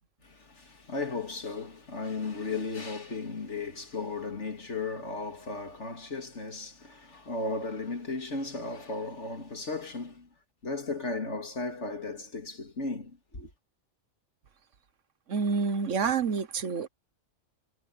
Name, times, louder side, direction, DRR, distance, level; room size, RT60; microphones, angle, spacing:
voice 1, 0.2-10.3 10.6-13.5, left 3 dB, 60° left, 2.9 m, -35 dB
voice 2, 15.3-16.9, right 5 dB, 65° right, 1.4 m, -28 dB
omnidirectional pair, 1.4 m